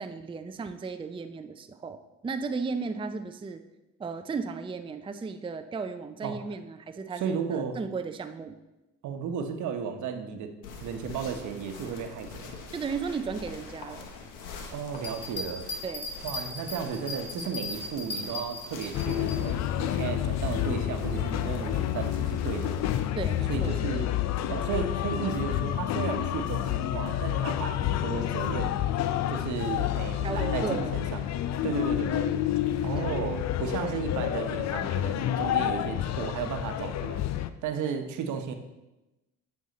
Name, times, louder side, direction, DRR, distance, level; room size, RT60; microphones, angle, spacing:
voice 1, 0.0-3.6 4.0-8.6 12.7-14.1 15.8-16.1 23.2-23.8 30.2-30.9 32.9-33.1 33.8-34.0, right 5 dB, 15° right, 8 dB, 0.5 m, -35 dB
voice 2, 7.2-7.8 9.0-10.5 10.8-12.5 14.7-15.7 16.2-22.7 23.5-24.1 24.5-28.7 29.3-31.3 31.6-32.3 32.8-37.2 37.6-38.5, right 7 dB, 65° right, 6 dB, 1.0 m, -34 dB
sound 1, 10.6-23.0, left 4 dB, 80° left, 1.3 m, -45 dB
sound 2, 14.9-19.4, left 2 dB, 35° left, 2.8 m, -37 dB
sound 3, 18.9-37.5, left 12 dB, 55° left, 0.6 m, -29 dB
9.1 x 5.6 x 4.1 m, 1.0 s
supercardioid pair, 75°, 31 cm